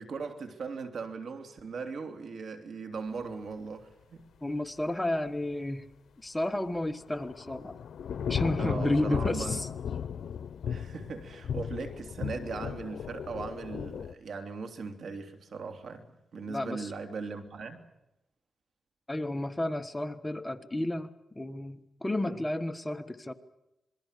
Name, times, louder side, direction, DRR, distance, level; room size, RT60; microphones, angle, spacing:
voice 1, 0.0-4.2 8.6-9.6 10.7-17.8 22.3-22.4, right 4 dB, 75° right, 3.2 m, -39 dB
voice 2, 4.4-5.9 6.2-7.8 8.3-9.7 16.5-16.9 19.1-23.3, left 1 dB, 15° left, 1.3 m, -32 dB
Thunder / Rain, 6.8-14.1, left 8 dB, 90° left, 0.8 m, -35 dB
27.0 x 22.0 x 6.8 m
wide cardioid pair, 115°, 0 cm